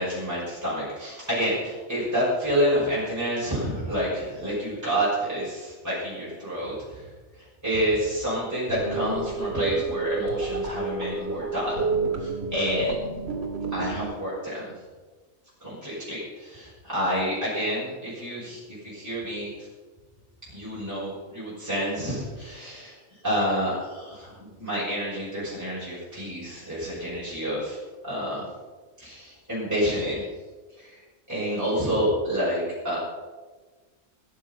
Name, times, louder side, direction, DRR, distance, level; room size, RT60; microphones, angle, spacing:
voice 1, 0.0-7.1 7.6-11.9 12.2-13.1 13.7-14.7 15.6-19.7 20.5-27.8 28.0-28.4 29.0-30.2 30.7-31.0 31.3-33.0, equal, 10° right, -9 dB, 6.2 m, -28 dB
sound 1, 8.7-14.0, right 3 dB, 50° right, 2.8 m, -29 dB
20.0 x 10.5 x 5.6 m, 1.4 s
omnidirectional pair, 1.4 m